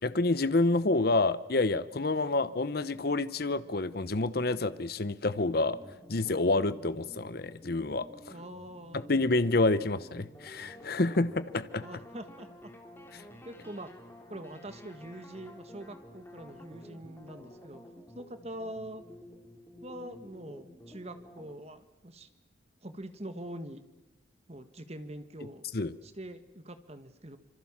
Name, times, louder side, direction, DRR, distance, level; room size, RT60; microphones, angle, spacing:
voice 1, 0.0-5.8 6.1-8.1 8.9-11.8 25.7-25.9, left 2 dB, 50° left, 14 dB, 0.8 m, -28 dB
sound 1, 5.6-21.5, left 1 dB, 10° left, 3.6 m, -51 dB
voice 2, 8.3-9.1 11.8-12.5 13.5-13.9 14.3-17.8 18.1-19.0 19.8-22.3 22.8-23.8 24.5-25.7 26.0-27.4, right 1 dB, 35° right, 10 dB, 1.7 m, -44 dB
26.5 x 24.0 x 7.4 m, 1.0 s
head